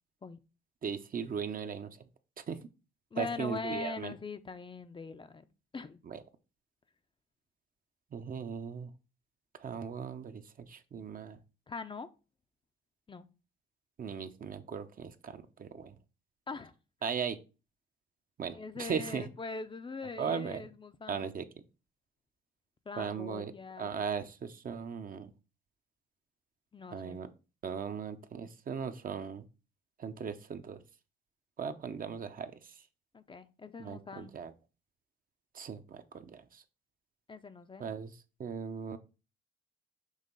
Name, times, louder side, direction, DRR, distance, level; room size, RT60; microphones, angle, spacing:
voice 1, 0.8-2.0 2.4-2.6 3.1-4.1 6.0-6.2 8.1-8.9 9.6-11.4 14.0-16.0 17.0-17.4 18.4-19.3 20.2-20.7 21.1-21.4 23.0-23.5 23.8-25.3 26.9-27.3 27.6-29.4 30.0-30.8 31.6-32.8 33.8-34.5 35.5-36.6 37.8-39.0, right 6 dB, 45° right, 0.7 m, -38 dB
voice 2, 3.1-6.0 11.7-12.1 13.1-13.2 16.5-16.7 18.5-21.3 22.9-23.9 26.7-27.2 33.1-34.3 37.3-37.9, left 4 dB, 25° left, 0.5 m, -42 dB
6.4 x 2.9 x 5.4 m
cardioid pair, 90°, 20 cm